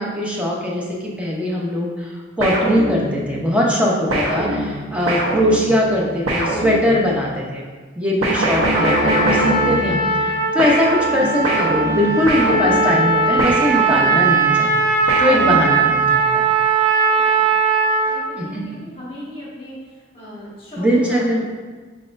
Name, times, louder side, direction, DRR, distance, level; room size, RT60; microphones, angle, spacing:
voice 1, 0.0-7.6 8.0-14.9 15.2-16.4 18.4-18.7 20.8-21.4, equal, 5° right, -4 dB, 0.7 m, -20 dB
sound 1, 2.4-3.4 4.1-7.3 8.2-10.3 10.6-14.3 15.1-16.1, right 1 dB, 90° right, 0.9 m, -23 dB
Trumpet, 8.7-18.2, right 4 dB, 45° right, 0.5 m, -19 dB
voice 2, 16.2-16.6 17.0-17.6 18.0-21.4, left 1 dB, 25° left, -7 dB, 1.5 m, -38 dB
4.7 x 4.0 x 2.6 m, 1.4 s
head